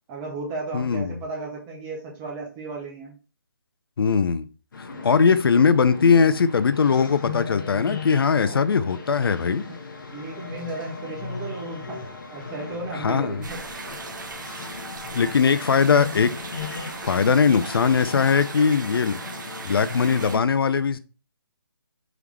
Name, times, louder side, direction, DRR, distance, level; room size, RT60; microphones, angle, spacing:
voice 1, 0.1-3.1 4.9-5.1 8.4-8.6 9.7-9.8 10.1-12.0 12.3-13.6, right 3 dB, 10° right, 0.5 m, -34 dB
voice 2, 0.7-1.1 4.0-4.5 5.0-9.7 13.0-13.4 15.1-16.4 17.0-19.2 19.7-21.0, left 5 dB, 70° left, 0.4 m, -20 dB
sound 1, 4.7-20.4, left 4 dB, 55° left, 0.8 m, -37 dB
sound 2, 13.4-20.4, right 4 dB, 55° right, 0.6 m, -38 dB
3.6 x 3.4 x 3.1 m
hypercardioid pair, 160°, 12 cm